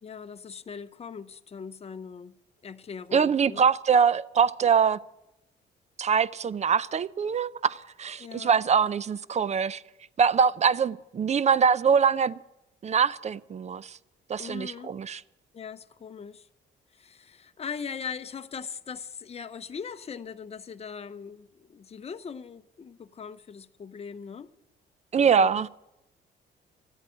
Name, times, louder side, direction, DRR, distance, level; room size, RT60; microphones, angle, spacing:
voice 1, 0.0-2.4 2.6-3.7 8.2-8.6 14.4-15.0 15.5-16.5 16.9-24.5 25.1-25.5, left 6 dB, 30° left, 0.7 m, -40 dB
voice 2, 3.1-5.0 6.0-9.8 10.2-12.4 12.8-14.0 14.3-15.2 25.1-25.7, right 6 dB, 35° right, 0.5 m, -23 dB
12.5 x 8.2 x 9.8 m
cardioid pair, 90°, 20 cm